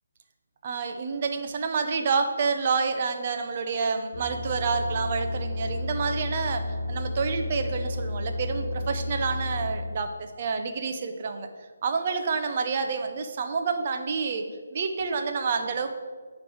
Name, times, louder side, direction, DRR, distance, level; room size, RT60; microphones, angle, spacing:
voice 1, 0.6-11.5 11.8-14.4 14.7-16.0, right 5 dB, 40° right, 6 dB, 0.8 m, -28 dB
sound 1, 4.1-9.7, left 1 dB, 80° left, 1.1 m, -32 dB
9.7 x 3.4 x 6.3 m, 1.5 s
figure-of-eight pair, 160°, 0 cm